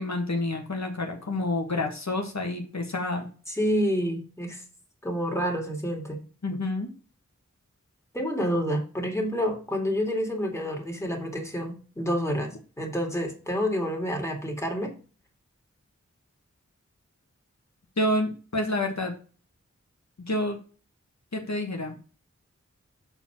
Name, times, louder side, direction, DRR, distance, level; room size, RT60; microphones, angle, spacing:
voice 1, 0.0-3.3 6.4-6.9 18.0-19.1 20.3-20.6 21.3-22.0, left 1 dB, 65° left, 2 dB, 1.4 m, -28 dB
voice 2, 3.6-4.6 5.0-6.2 8.1-14.9, equal, 10° left, 0 dB, 2.2 m, -28 dB
6.8 x 4.5 x 5.7 m, 0.37 s
wide cardioid pair, 60°, 29 cm